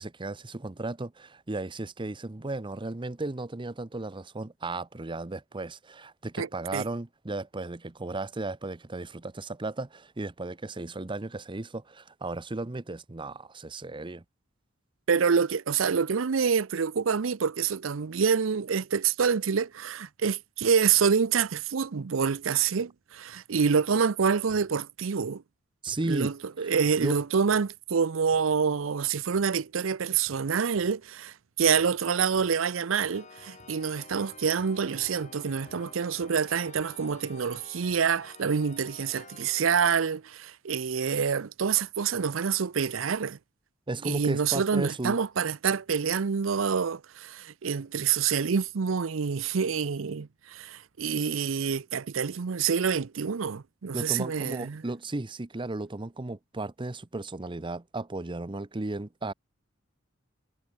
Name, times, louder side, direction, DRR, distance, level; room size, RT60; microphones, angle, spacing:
voice 1, 0.0-14.2 25.8-26.3 26.6-26.7 27.0-27.1 43.9-45.2 53.9-59.3, right 2 dB, 25° right, 0.8 m, -35 dB
voice 2, 6.4-6.9 15.1-25.4 26.0-43.4 44.0-54.8, right 6 dB, 80° right, 0.6 m, -27 dB
sound 1, 24.5-24.8 25.9-26.2 26.8-27.8 28.3-28.6 29.3-29.7 30.3-31.1 31.8-32.0 32.3-35.9 36.2-36.5 36.8-37.2 37.9-38.1 39.0-39.3 39.9-40.0, right 1 dB, 55° right, 4.6 m, -59 dB
sound 2, 33.1-40.0, left 4 dB, 40° left, 3.1 m, -50 dB
head